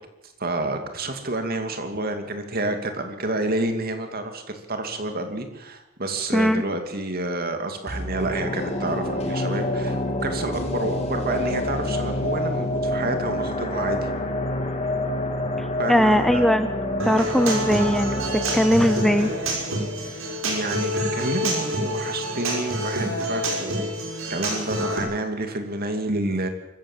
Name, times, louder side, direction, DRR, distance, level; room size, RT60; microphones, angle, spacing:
voice 1, 0.2-14.1 15.8-16.5 17.1-17.3 20.4-23.9 24.3-26.5, right 2 dB, 45° right, 6 dB, 2.6 m, -29 dB
voice 2, 6.3-6.6 15.6-16.7 17.0-18.2 18.5-19.3, equal, ahead, 10 dB, 0.6 m, -20 dB
sound 1, 7.9-21.0 21.3-21.4, left 1 dB, 30° left, 2.8 m, -28 dB
Human voice / Acoustic guitar, 17.0-25.0, right 1 dB, 65° right, 5.6 m, -27 dB
24.5 x 15.0 x 7.5 m, 0.97 s
head